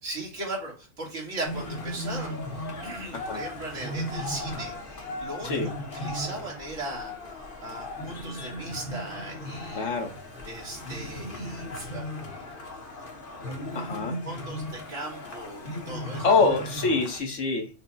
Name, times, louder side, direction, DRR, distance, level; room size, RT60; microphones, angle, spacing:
voice 1, 0.0-7.1 7.6-9.9 10.5-12.0 13.4-13.9 14.2-16.3, right 2 dB, 80° right, -2 dB, 2.1 m, -38 dB
sound 1, 1.4-17.2, left 1 dB, 50° left, 1.1 m, -36 dB
voice 2, 9.7-10.1 13.7-14.2 16.2-17.7, left 4 dB, 70° left, 3 dB, 1.4 m, -25 dB
6.0 x 2.1 x 2.6 m, 0.31 s
omnidirectional pair, 1.3 m